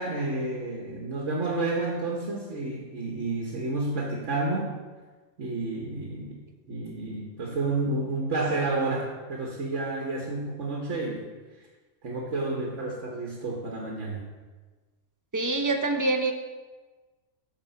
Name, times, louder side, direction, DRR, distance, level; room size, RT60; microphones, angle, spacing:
voice 1, 0.0-4.7 5.4-6.4 6.7-11.3 12.0-14.2, right 2 dB, 65° right, -1 dB, 1.6 m, -30 dB
voice 2, 15.3-16.3, right 2 dB, 25° right, 5 dB, 0.4 m, -25 dB
9.2 x 4.6 x 7.0 m, 1.3 s
omnidirectional pair, 1.4 m